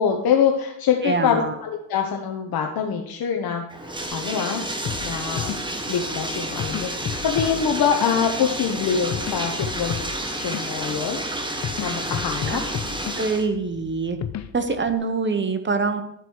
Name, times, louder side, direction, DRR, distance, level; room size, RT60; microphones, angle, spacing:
voice 1, 0.0-4.7 5.0-5.5 5.9-6.9 7.2-11.2 11.8-12.6, left 7 dB, 65° left, 2 dB, 1.1 m, -24 dB
voice 2, 1.0-1.5 12.5-12.6 13.2-14.2 14.5-16.0, right 4 dB, 30° right, 8 dB, 1.0 m, -24 dB
Bathtub (filling or washing), 3.7-13.5, right 1 dB, 10° right, 1.3 m, -30 dB
sound 1, 4.8-14.9, left 9 dB, 45° left, 0.6 m, -34 dB
12.0 x 5.1 x 4.6 m, 0.79 s
cardioid pair, 90°, 39 cm